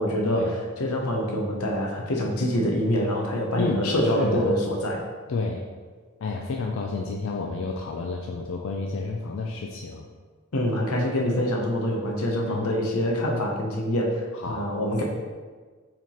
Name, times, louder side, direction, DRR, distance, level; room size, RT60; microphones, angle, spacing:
voice 1, 0.0-5.0 10.5-15.0, equal, 85° left, 0 dB, 0.8 m, -25 dB
voice 2, 5.3-5.6 6.2-10.0 12.5-12.7 14.4-14.7, left 4 dB, 60° left, 0 dB, 0.3 m, -30 dB
4.6 x 3.6 x 3.0 m, 1.4 s
head